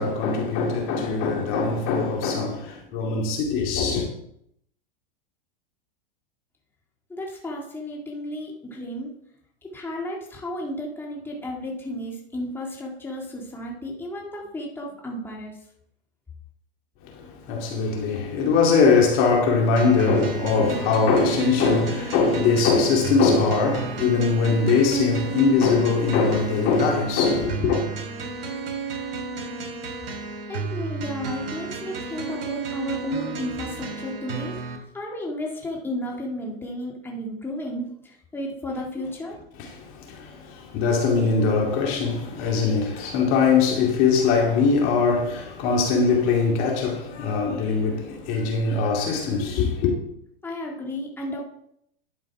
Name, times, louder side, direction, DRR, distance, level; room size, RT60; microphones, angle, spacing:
voice 1, 0.0-4.1 17.0-27.8 39.8-50.0, left 4 dB, 45° left, 2.3 m, -21 dB
voice 2, 7.1-9.1 9.6-15.6 30.5-34.6 34.9-39.4 50.4-51.4, left 1 dB, 5° left, 1.9 m, -33 dB
sound 1, 19.8-34.8, right 4 dB, 70° right, 2.3 m, -33 dB
11.0 x 5.2 x 4.7 m
hypercardioid pair, 110°, 29 cm